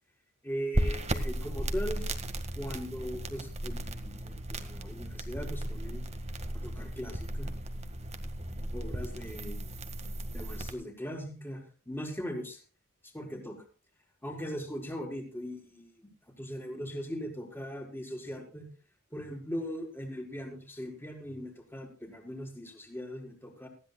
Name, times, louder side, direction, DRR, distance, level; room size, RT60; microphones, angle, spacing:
voice 1, 0.4-2.1 2.6-6.0 6.5-7.5 8.7-9.7 10.3-12.6 13.0-13.7 14.2-18.7 19.1-23.7, equal, 10° left, 2 dB, 4.3 m, -39 dB
sound 1, 0.7-10.7, right 1 dB, 30° right, 1.8 m, -35 dB
19.0 x 15.5 x 2.3 m, 0.36 s
head